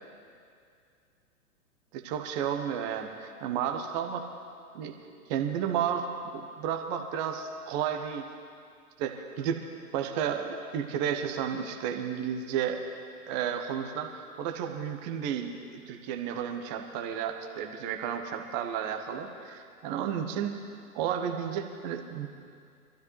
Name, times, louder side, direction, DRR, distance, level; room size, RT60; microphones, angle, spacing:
voice 1, 1.9-4.3 4.7-5.0 5.3-6.1 6.3-8.3 9.0-9.6 9.9-12.8 13.3-20.5 20.9-22.3, right 8 dB, 30° right, 5 dB, 1.2 m, -32 dB
24.5 x 13.0 x 3.3 m, 2.3 s
figure-of-eight pair, 110°, 44 cm